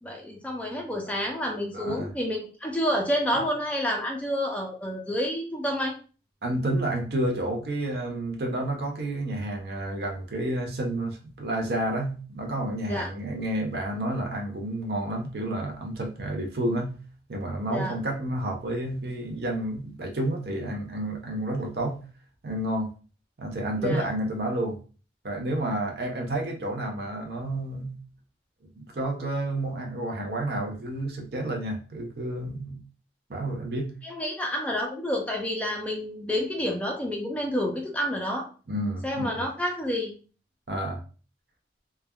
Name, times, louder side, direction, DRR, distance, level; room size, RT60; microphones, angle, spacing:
voice 1, 0.0-5.9 12.9-13.1 17.7-17.9 23.8-24.0 34.0-38.5 39.0-40.1, equal, 10° left, 1 dB, 0.4 m, -29 dB
voice 2, 1.7-2.1 6.4-16.9 17.3-22.0 22.4-22.9 23.4-24.8 25.2-27.9 28.8-32.8 33.3-33.9 38.7-39.4 40.7-41.0, right 1 dB, 60° right, 2 dB, 0.6 m, -30 dB
3.2 x 2.2 x 2.2 m, 0.36 s
head